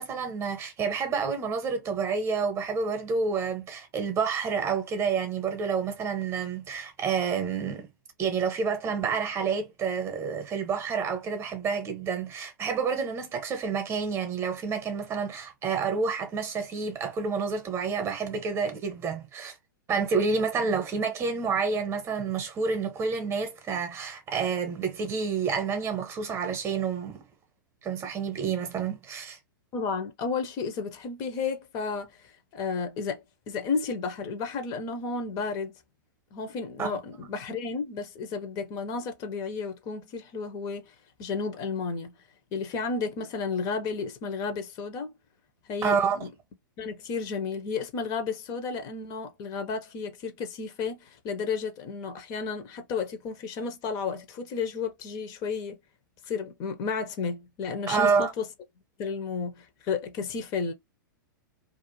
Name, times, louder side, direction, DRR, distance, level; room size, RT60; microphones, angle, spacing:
voice 1, 0.0-7.9 8.2-19.5 19.9-27.2 27.8-29.4 36.8-37.0 45.8-46.2 57.9-58.3, right 5 dB, 25° right, 0.9 m, -29 dB
voice 2, 29.7-32.1 32.5-35.7 36.3-40.9 41.2-42.1 42.5-45.1 45.7-46.3 46.8-55.8 56.3-58.5 59.0-60.7, left 5 dB, 35° left, 0.7 m, -32 dB
2.5 x 2.3 x 3.0 m
figure-of-eight pair, 105°, 11 cm